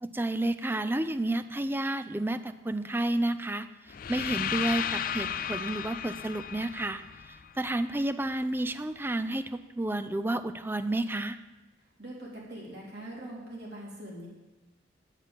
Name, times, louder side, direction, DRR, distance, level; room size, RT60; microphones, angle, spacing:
voice 1, 0.0-11.4, right 1 dB, 10° right, 12 dB, 0.4 m, -31 dB
sound 1, 3.9-7.9, left 9 dB, 50° left, 0.4 m, -34 dB
voice 2, 12.0-14.3, right 1 dB, 60° right, -4 dB, 3.8 m, -42 dB
10.5 x 7.3 x 7.4 m, 1.1 s
head